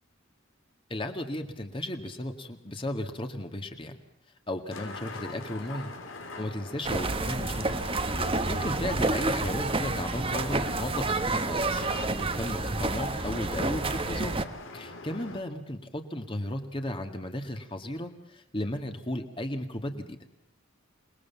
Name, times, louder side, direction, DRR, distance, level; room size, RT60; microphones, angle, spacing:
voice 1, 0.9-4.0 4.5-5.9 6.4-7.9 8.5-11.8 12.2-14.4 14.7-20.2, left 1 dB, 25° left, 5 dB, 2.0 m, -35 dB
sound 1, 4.7-15.4, left 2 dB, 80° left, 3.6 m, -43 dB
sound 2, 6.8-14.4, right 3 dB, 25° right, 1.2 m, -29 dB
27.5 x 20.5 x 7.2 m, 0.76 s
head